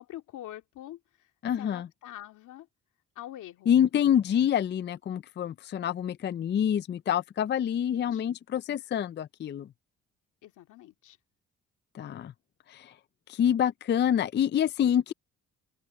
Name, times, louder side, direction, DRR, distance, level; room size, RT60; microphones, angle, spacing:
voice 1, 0.0-1.3 1.6-2.7 3.2-3.7 7.8-8.2 10.4-11.2, left 13 dB, 85° left, 2.2 m, -45 dB
voice 2, 1.4-1.9 3.7-9.7 11.9-12.3 12.7-12.9 13.3-15.1, left 9 dB, 35° left, 0.4 m, -27 dB
open air
cardioid pair, 90°, 30 cm